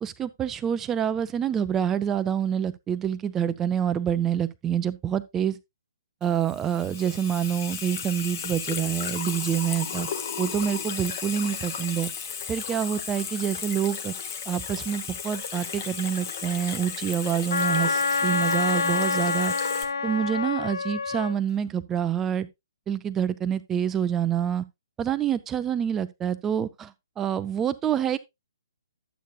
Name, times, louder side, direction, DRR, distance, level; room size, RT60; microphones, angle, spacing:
voice 1, 0.0-5.6 6.2-10.1 10.4-12.1 12.5-14.1 14.5-19.5 20.0-22.5 22.9-24.6 25.0-28.2, right 9 dB, 15° right, 0.5 m, -27 dB
Water tap faucet / Sink (filling or washing), 6.2-19.8, left 7 dB, 45° left, 1.2 m, -34 dB
Wind instrument woodwind instrument, 17.5-21.4, left 4 dB, 60° left, 0.5 m, -26 dB
11.0 x 8.2 x 2.3 m
figure-of-eight pair, 130°, 2 cm